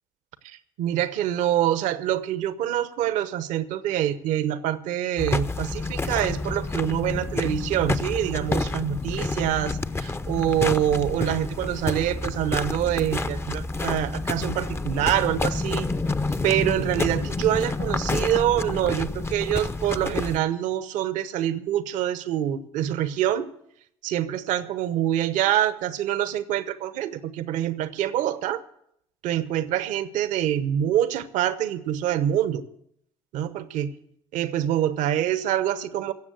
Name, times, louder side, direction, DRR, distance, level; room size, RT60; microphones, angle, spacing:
voice 1, 0.4-15.9 16.4-23.5 24.0-28.6 29.2-32.6 33.3-33.9 34.3-36.1, right 11 dB, 70° right, 14 dB, 0.9 m, -25 dB
sound 1, 5.2-20.4, left 3 dB, 20° left, 0.7 m, -29 dB
16.5 x 7.3 x 8.1 m, 0.73 s
hypercardioid pair, 55°, 14 cm